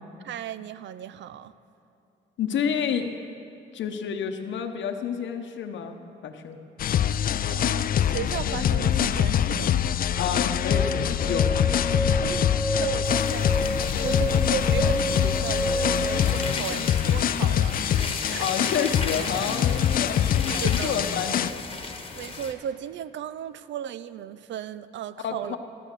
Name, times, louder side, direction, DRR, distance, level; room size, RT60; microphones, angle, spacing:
voice 1, 0.2-1.5 7.5-9.9 12.2-12.5 12.8-17.8 18.2-18.5 20.5-21.1 22.2-25.6, right 10 dB, 65° right, 15 dB, 0.5 m, -35 dB
voice 2, 2.4-3.1 3.7-6.0 6.2-6.6 10.2-12.0 18.4-21.7 25.2-25.6, left 7 dB, 70° left, 4 dB, 0.9 m, -30 dB
sound 1, 6.8-21.5, left 9 dB, 45° left, 0.4 m, -24 dB
sound 2, 10.7-16.5, right 1 dB, 30° right, 1.3 m, -30 dB
sound 3, 13.0-22.5, left 4 dB, 30° left, 1.3 m, -36 dB
13.5 x 11.0 x 6.5 m, 2.8 s
cardioid pair, 90°, 20 cm